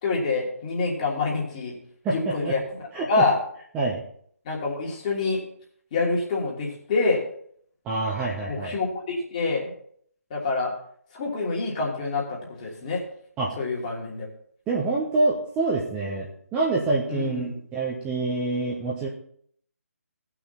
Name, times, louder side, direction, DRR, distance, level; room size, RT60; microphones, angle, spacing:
voice 1, 0.0-1.8 2.1-2.6 2.9-3.4 4.4-5.4 5.9-7.2 8.5-9.7 10.3-10.7 11.1-13.0 13.6-14.3 17.1-17.6, left 3 dB, 30° left, -3 dB, 3.0 m, -26 dB
voice 2, 2.0-2.6 2.9-3.3 3.7-4.0 7.8-8.7 13.4-13.5 14.7-19.1, right 3 dB, 10° right, -4 dB, 1.1 m, -26 dB
16.5 x 6.0 x 4.3 m, 0.62 s
figure-of-eight pair, 150°, 8 cm